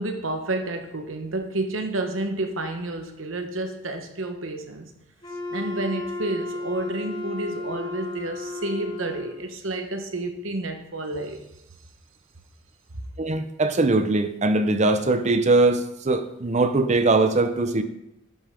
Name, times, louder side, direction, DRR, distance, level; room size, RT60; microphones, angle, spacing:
voice 1, 0.0-4.9 5.5-11.4, right 2 dB, 85° right, 6 dB, 1.0 m, -30 dB
Wind instrument woodwind instrument, 5.2-9.5, left 2 dB, 20° left, 1.4 m, -33 dB
voice 2, 13.2-17.8, right 2 dB, 35° right, 9 dB, 0.6 m, -21 dB
11.0 x 5.5 x 3.7 m, 0.85 s
head